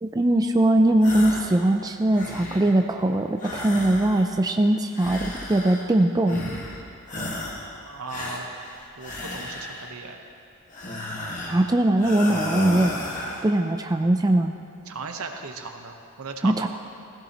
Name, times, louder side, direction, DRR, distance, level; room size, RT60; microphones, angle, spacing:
voice 1, 0.0-6.4 11.5-12.9 13.4-14.6 16.4-16.7, right 1 dB, 15° right, 5 dB, 0.4 m, -21 dB
sound 1, 1.0-1.6 1.9-2.8 3.4-4.4 4.9-5.9 6.3-6.8 7.1-7.7 8.1-9.9 10.7-11.7 12.0-13.5, left 1 dB, 35° left, 1.6 m, -34 dB
voice 2, 7.8-8.5 9.0-10.2 14.8-16.7, right 4 dB, 75° right, 4 dB, 1.1 m, -37 dB
18.0 x 16.0 x 3.0 m, 2.5 s
head